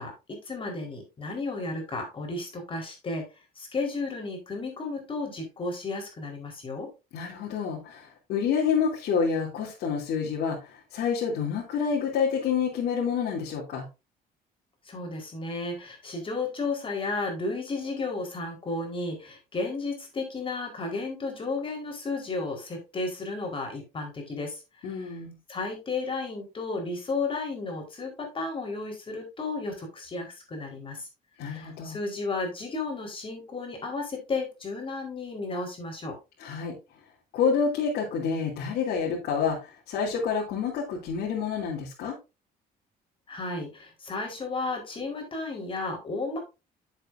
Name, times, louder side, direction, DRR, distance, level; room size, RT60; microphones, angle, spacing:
voice 1, 0.0-3.3 3.6-6.9 14.8-25.1 25.5-31.1 31.4-36.2 43.3-46.4, left 3 dB, 30° left, 2 dB, 4.5 m, -33 dB
voice 2, 7.1-10.6 10.9-13.8 24.8-25.4 31.4-32.0 36.4-36.7 37.3-39.6 39.9-42.1, left 6 dB, 75° left, -4 dB, 3.3 m, -28 dB
10.0 x 7.9 x 2.7 m, 0.27 s
cardioid pair, 110°, 17 cm